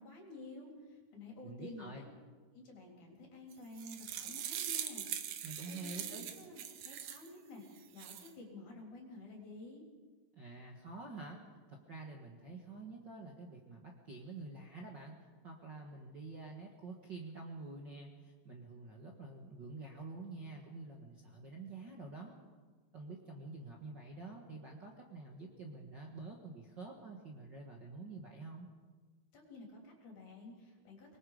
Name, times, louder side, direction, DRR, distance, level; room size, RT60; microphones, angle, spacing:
voice 1, 0.0-2.1 2.5-9.8 29.3-31.2, left 2 dB, 55° left, -1 dB, 5.1 m, -51 dB
voice 2, 1.4-2.1 5.4-6.3 10.3-11.4 11.7-15.1 15.4-22.3 22.9-28.7, right 3 dB, 45° right, 0 dB, 1.6 m, -48 dB
sound 1, 3.5-7.3 7.8-8.3, right 10 dB, 70° right, 2.6 m, -42 dB
25.0 x 21.5 x 5.1 m, 1.4 s
omnidirectional pair, 4.1 m